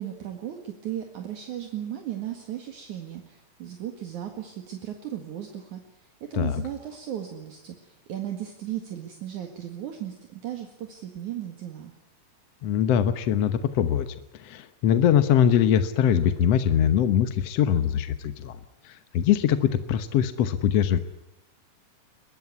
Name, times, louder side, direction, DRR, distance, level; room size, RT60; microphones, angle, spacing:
voice 1, 0.0-5.8 6.2-11.9, right 11 dB, 60° right, 4 dB, 3.1 m, -36 dB
voice 2, 12.6-21.0, left 9 dB, 65° left, 10 dB, 1.6 m, -23 dB
22.5 x 20.5 x 9.6 m, 0.83 s
omnidirectional pair, 4.0 m